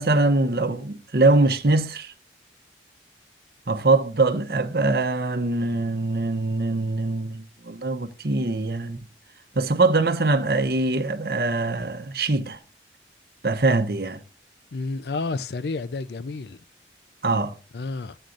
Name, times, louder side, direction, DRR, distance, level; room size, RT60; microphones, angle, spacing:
voice 1, 0.0-2.1 3.7-9.0 9.5-12.6 13.4-14.2 17.2-17.6, right 3 dB, 60° right, 0.8 m, -23 dB
voice 2, 14.7-16.6 17.7-18.2, left 3 dB, 70° left, 0.5 m, -30 dB
14.0 x 8.9 x 2.5 m
head